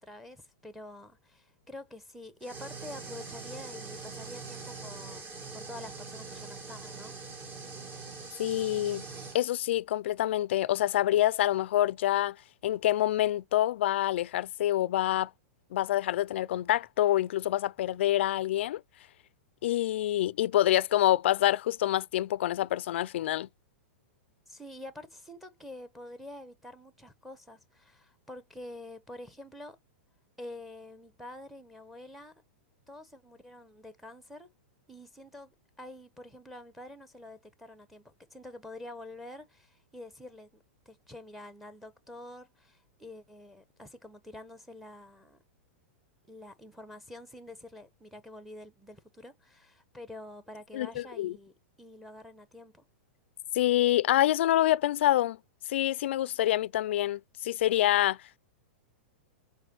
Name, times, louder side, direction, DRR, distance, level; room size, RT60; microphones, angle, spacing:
voice 1, 0.0-7.2 24.5-29.8 30.4-32.3 32.9-34.5 34.9-45.4 46.3-52.8, left 1 dB, ahead, 1.1 m, -47 dB
sound 1, 2.4-9.4, right 4 dB, 30° right, 2.3 m, -43 dB
voice 2, 8.4-9.0 9.3-12.3 12.6-15.3 15.7-18.8 19.6-23.5 50.7-51.3 53.5-55.4 55.7-58.2, left 13 dB, 70° left, 0.5 m, -26 dB
6.5 x 4.8 x 6.2 m
hypercardioid pair, 135°, 7 cm